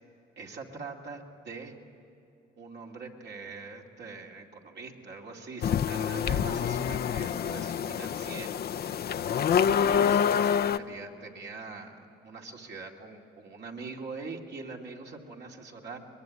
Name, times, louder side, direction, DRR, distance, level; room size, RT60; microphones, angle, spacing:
voice 1, 0.4-1.7 2.6-8.5 9.8-16.0, right 4 dB, 60° right, 0 dB, 2.7 m, -43 dB
sound 1, 5.6-10.8, left 8 dB, 50° left, 0.6 m, -27 dB
23.0 x 21.5 x 9.6 m, 2.6 s
cardioid pair, 90°, 20 cm